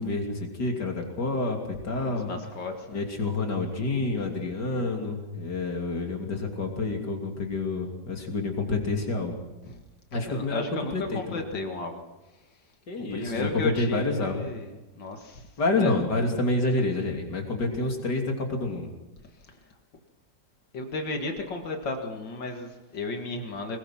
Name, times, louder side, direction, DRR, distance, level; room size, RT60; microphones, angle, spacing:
voice 1, 0.0-2.3 2.9-9.4 10.1-11.4 12.9-14.4 15.6-18.9, left 2 dB, 70° left, 2 dB, 3.6 m, -28 dB
voice 2, 2.1-3.0 9.7-9.8 10.1-12.0 13.1-14.7 15.0-15.4 15.8-15.9 20.7-23.8, left 3 dB, 85° left, 4 dB, 2.7 m, -34 dB
21.5 x 20.5 x 6.0 m, 1.1 s
omnidirectional pair, 1.9 m